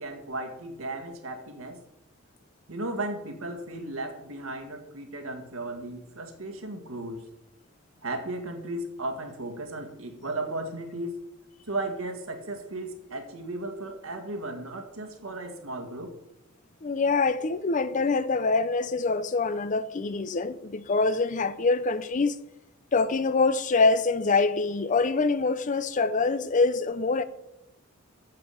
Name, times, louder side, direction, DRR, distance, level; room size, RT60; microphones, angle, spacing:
voice 1, 0.0-1.8 2.7-7.2 8.0-11.2 11.7-16.1, right 2 dB, 85° right, 1.8 m, -35 dB
voice 2, 16.8-22.4 22.9-27.2, left 3 dB, 35° left, 0.5 m, -25 dB
7.5 x 7.2 x 7.8 m
head